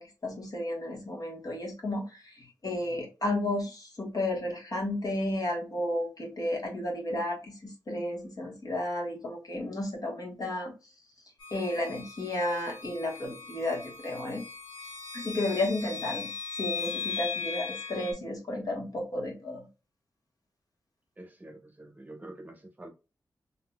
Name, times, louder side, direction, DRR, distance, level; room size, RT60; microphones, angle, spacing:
voice 1, 0.0-10.7 11.5-14.4 15.1-19.7, left 1 dB, 50° left, 1.3 m, -33 dB
sound 1, 11.4-18.1, left 5 dB, 70° left, 1.4 m, -38 dB
voice 2, 21.2-22.9, right 1 dB, 20° right, 0.8 m, -46 dB
3.7 x 2.7 x 2.2 m
wide cardioid pair, 75°, 8 cm